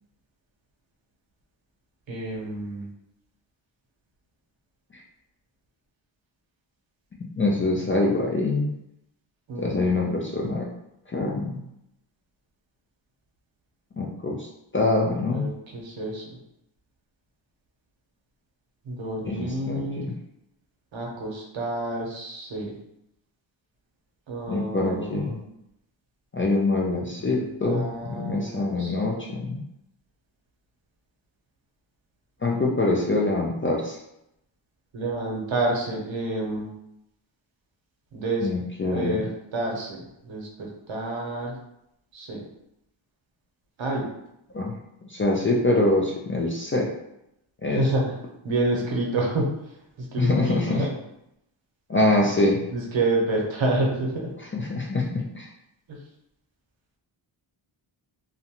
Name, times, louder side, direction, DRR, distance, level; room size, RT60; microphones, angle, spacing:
voice 1, 2.1-2.9 9.5-10.2 15.3-16.2 18.8-20.1 20.9-22.7 24.3-25.4 27.0-29.1 34.9-36.7 38.1-38.5 38.9-41.5 42.1-42.4 43.8-44.1 47.7-48.2 48.4-49.5 50.0-50.9 52.7-54.3 55.9-56.0, right 2 dB, 65° right, -1 dB, 0.8 m, -29 dB
voice 2, 7.4-8.7 9.6-10.7 11.1-11.6 14.0-14.5 14.7-15.5 19.3-20.1 24.5-25.4 26.3-29.6 32.4-34.0 38.4-39.2 44.5-44.7 45.1-46.9 47.6-47.8 50.2-50.8 51.9-52.6 54.5-55.5, left 2 dB, 30° left, -2 dB, 0.3 m, -24 dB
2.5 x 2.1 x 2.8 m, 0.83 s
wide cardioid pair, 80°, 49 cm